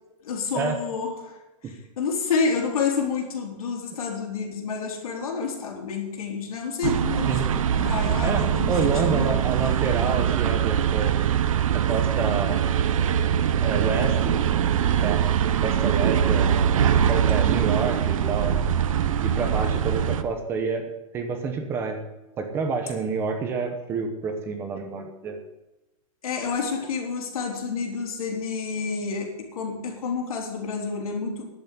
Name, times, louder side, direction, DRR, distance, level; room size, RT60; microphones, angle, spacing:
voice 1, 0.2-1.4 1.6-9.4 26.2-31.4, left 5 dB, 85° left, 2 dB, 3.7 m, -29 dB
sound 1, 6.8-20.2, right 9 dB, 70° right, 1.0 m, -23 dB
voice 2, 8.2-11.2 11.7-12.7 13.6-14.4 15.0-15.2 15.6-16.8 17.1-18.6 19.2-22.0 22.4-25.4, right 5 dB, 15° right, 6 dB, 0.9 m, -28 dB
10.5 x 8.4 x 8.4 m, 1.0 s
supercardioid pair, 180°, 18 cm